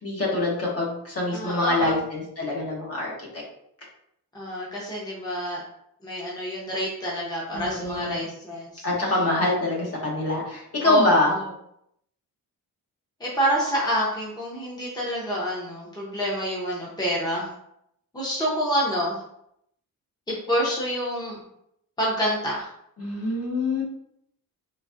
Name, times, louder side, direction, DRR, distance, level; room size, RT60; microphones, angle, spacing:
voice 1, 0.0-3.4 7.5-8.3 8.8-11.3 23.0-23.8, left 2 dB, 40° left, -3 dB, 1.0 m, -25 dB
voice 2, 1.3-2.0 4.3-5.6 6.0-8.8 10.8-11.4 13.2-17.5 18.1-19.2 20.5-21.4 22.0-22.7, equal, 10° left, -5 dB, 0.7 m, -27 dB
3.9 x 2.6 x 2.4 m, 0.74 s
wide cardioid pair, 160°, 36 cm